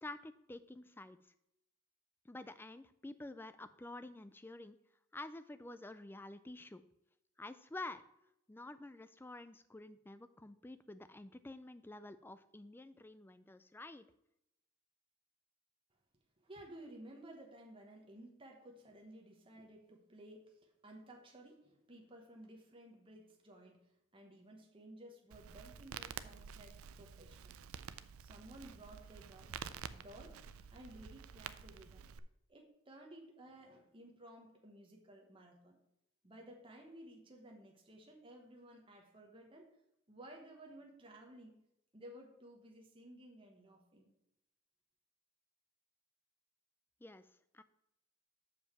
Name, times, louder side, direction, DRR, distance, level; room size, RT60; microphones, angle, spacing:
voice 1, 0.0-1.3 2.2-4.8 5.1-6.8 7.4-8.0 8.5-14.1 47.0-47.3 47.5-47.6, left 2 dB, 10° left, 13 dB, 0.3 m, -49 dB
voice 2, 16.4-27.6 28.2-30.4 30.7-32.1 32.5-35.8 36.2-39.7 40.1-41.6 41.9-44.1, right 1 dB, 25° right, 1 dB, 1.1 m, -56 dB
Crackle, 25.3-32.2, right 7 dB, 85° right, 0.4 m, -50 dB
6.8 x 5.2 x 5.8 m, 0.82 s
head